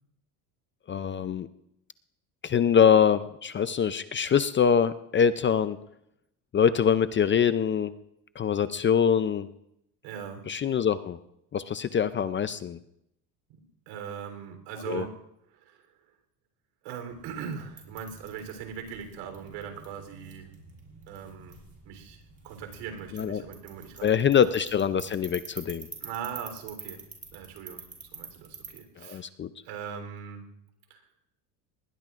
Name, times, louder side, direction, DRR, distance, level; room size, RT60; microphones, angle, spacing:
voice 1, 0.9-1.5 2.4-5.8 6.5-7.9 8.4-9.5 10.5-11.2 11.5-12.8 14.9-15.0 23.1-23.4 24.0-25.9 29.0-29.5, left 7 dB, 25° left, 13 dB, 0.4 m, -24 dB
voice 2, 10.0-10.4 13.5-15.2 15.5-15.9 16.8-20.5 21.1-21.6 21.8-24.4 26.0-27.0 27.3-29.3 29.6-30.5 30.9-31.1, right 7 dB, 80° right, 5 dB, 3.7 m, -40 dB
sound 1, 17.1-28.8, right 4 dB, 30° right, 6.1 m, -47 dB
20.5 x 20.0 x 2.5 m, 0.79 s
supercardioid pair, 110°, 48 cm